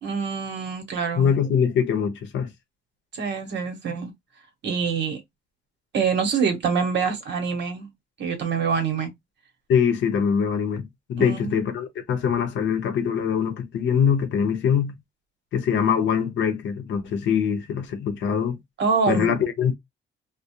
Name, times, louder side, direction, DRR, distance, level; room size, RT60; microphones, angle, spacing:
voice 1, 0.0-1.4 3.1-4.1 4.6-5.2 5.9-7.9 8.2-9.1 11.2-11.6 18.8-19.4, right 6 dB, 60° right, 0.9 m, -25 dB
voice 2, 1.2-2.5 9.7-14.9 15.5-18.6 19.1-19.7, left 7 dB, 70° left, 0.7 m, -23 dB
2.3 x 2.0 x 2.7 m
cardioid pair, 90°, 20 cm